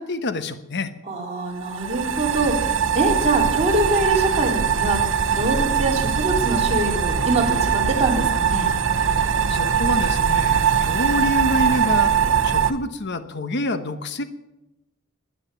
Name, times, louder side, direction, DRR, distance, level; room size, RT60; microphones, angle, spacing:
voice 1, 0.0-0.9 9.5-12.1 12.4-14.2, left 2 dB, 55° left, 10 dB, 1.0 m, -26 dB
voice 2, 1.1-5.0 5.3-8.7, right 2 dB, 30° right, -1 dB, 3.8 m, -24 dB
sound 1, 1.6-12.7, right 7 dB, 65° right, 0.9 m, -21 dB
21.0 x 9.7 x 6.9 m, 0.96 s
head